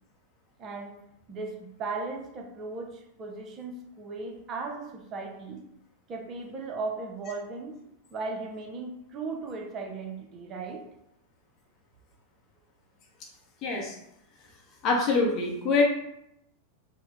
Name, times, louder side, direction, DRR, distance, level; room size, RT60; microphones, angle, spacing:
voice 1, 0.6-1.0 1.3-5.6 6.1-7.8 8.1-10.9, right 3 dB, 30° right, 0 dB, 0.8 m, -37 dB
voice 2, 13.6-14.0 14.8-15.8, left 3 dB, 35° left, -1 dB, 0.8 m, -24 dB
4.3 x 2.3 x 3.7 m, 0.80 s
figure-of-eight pair, 90°, 0 cm